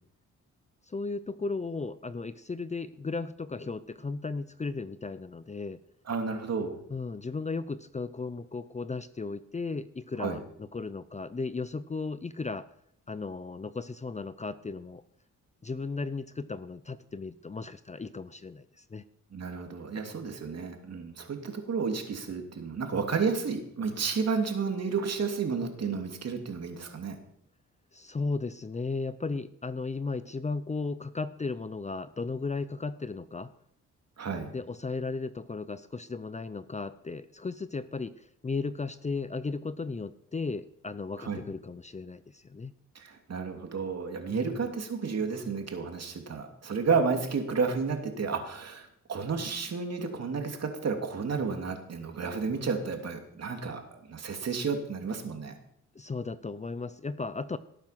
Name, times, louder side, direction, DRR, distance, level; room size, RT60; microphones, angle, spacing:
voice 1, 0.9-5.8 6.9-12.7 13.1-15.0 15.6-19.0 27.9-33.5 34.5-42.7 44.3-44.6 55.9-57.6, left 3 dB, 20° left, 14 dB, 0.7 m, -35 dB
voice 2, 6.1-6.8 10.2-10.4 19.3-27.1 34.2-34.5 41.2-41.4 42.9-55.5, right 5 dB, 55° right, 4 dB, 2.9 m, -31 dB
18.0 x 8.9 x 5.9 m, 0.71 s
cardioid pair, 85°, 31 cm